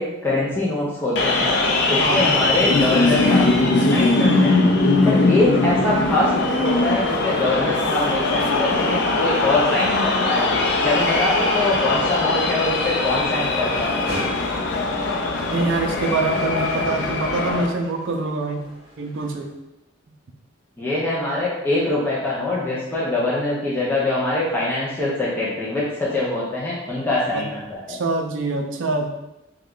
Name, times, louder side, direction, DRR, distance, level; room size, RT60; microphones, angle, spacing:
voice 1, 0.0-1.6 1.9-3.5 3.9-4.6 5.0-10.5 10.8-14.0 20.8-28.0, left 2 dB, 10° left, -7 dB, 0.5 m, -23 dB
sound 1, 1.2-17.7, left 2 dB, 60° left, 0.5 m, -20 dB
voice 2, 2.0-2.4 15.5-18.6 19.0-19.5 27.3-27.5 27.9-29.1, right 3 dB, 75° right, 4 dB, 0.4 m, -25 dB
sound 2, 14.1-19.5, right 1 dB, 35° right, 0.9 m, -40 dB
3.1 x 2.3 x 3.7 m, 0.94 s
head